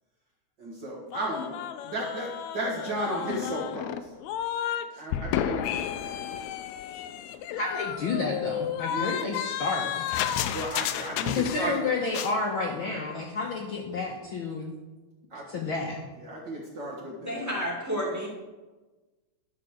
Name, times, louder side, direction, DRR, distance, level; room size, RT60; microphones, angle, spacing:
voice 1, 0.6-4.1 4.9-6.3 8.9-9.1 10.5-11.9 15.3-15.7 16.2-17.6, right 1 dB, 45° right, -3 dB, 1.8 m, -35 dB
sound 1, 1.1-4.9 5.1-11.8 12.1-12.4, left 10 dB, 80° left, 1.8 m, -32 dB
voice 2, 7.5-10.0 11.3-14.7 15.5-16.0, left 3 dB, 60° left, -1 dB, 1.5 m, -30 dB
voice 3, 17.3-18.3, equal, 5° right, -3 dB, 1.9 m, -30 dB
11.5 x 5.0 x 6.5 m, 1.2 s
omnidirectional pair, 3.3 m